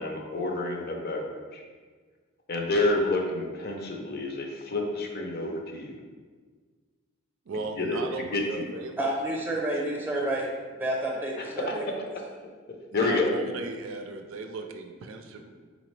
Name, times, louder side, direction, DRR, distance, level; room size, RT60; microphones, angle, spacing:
voice 1, 0.0-1.6 2.5-6.0 7.8-8.0 8.3-8.7 11.9-12.0 12.9-13.3, left 2 dB, 50° left, 0.6 m, -29 dB
voice 2, 7.5-9.1 9.5-9.6 12.9-15.5, right 3 dB, 75° right, 0.4 m, -37 dB
voice 3, 9.0-10.5 10.7-11.8, right 1 dB, 10° right, 0.7 m, -29 dB
4.0 x 3.8 x 3.2 m
head